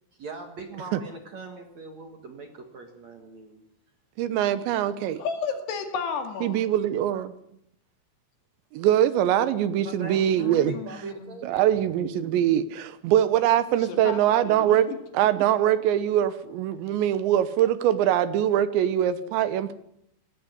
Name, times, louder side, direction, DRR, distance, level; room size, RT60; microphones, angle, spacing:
voice 1, 0.2-3.6 9.8-10.3 10.7-12.0, right 4 dB, 50° right, 5 dB, 2.2 m, -41 dB
voice 2, 4.2-5.2 6.4-7.3 8.7-10.7 11.4-14.9 15.1-19.7, right 11 dB, 75° right, 13 dB, 3.1 m, -23 dB
voice 3, 5.2-6.6 10.0-11.4 13.8-15.0, left 6 dB, 65° left, 6 dB, 3.9 m, -33 dB
18.5 x 15.5 x 9.6 m, 0.75 s
omnidirectional pair, 5.5 m